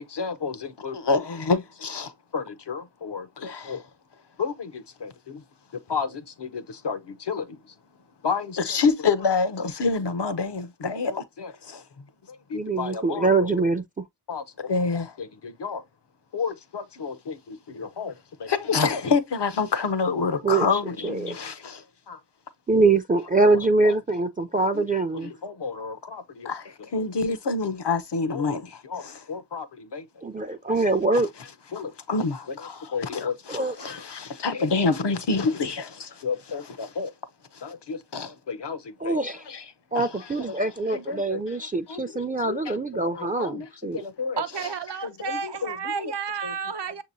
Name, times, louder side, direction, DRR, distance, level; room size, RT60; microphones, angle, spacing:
voice 1, 0.0-3.8 4.4-5.4 5.7-7.7 8.2-11.8 12.3-13.5 14.3-15.8 16.3-22.2 23.5-23.6 23.8-23.9 24.7-24.8 25.1-30.1 31.7-37.1 37.5-39.2 39.5-39.6 39.9-40.6 40.9-41.4 41.9-42.6 43.1-44.7 45.0-46.1 46.4-46.5, left 4 dB, 80° left, 0.7 m, -29 dB
voice 2, 12.5-14.0 20.4-20.7 21.0-21.4 22.7-25.3 30.2-31.3 33.5-33.9 39.0-39.4 39.9-44.0, right 3 dB, 20° right, 0.3 m, -24 dB
voice 3, 44.4-47.0, right 6 dB, 85° right, 0.6 m, -31 dB
6.6 x 2.8 x 2.5 m
wide cardioid pair, 50°, 40 cm